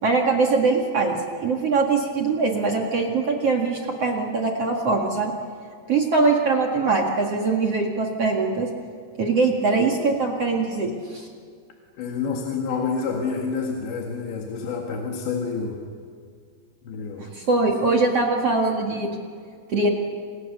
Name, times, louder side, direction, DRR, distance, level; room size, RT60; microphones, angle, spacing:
voice 1, 0.0-5.3 5.9-8.7 9.2-11.3 17.2-19.1 19.7-19.9, right 3 dB, 45° right, 1 dB, 2.3 m, -22 dB
voice 2, 12.0-15.9 16.9-17.3 17.7-18.0, left 5 dB, 75° left, 0 dB, 4.1 m, -28 dB
30.0 x 28.0 x 6.8 m, 2.2 s
omnidirectional pair, 5.2 m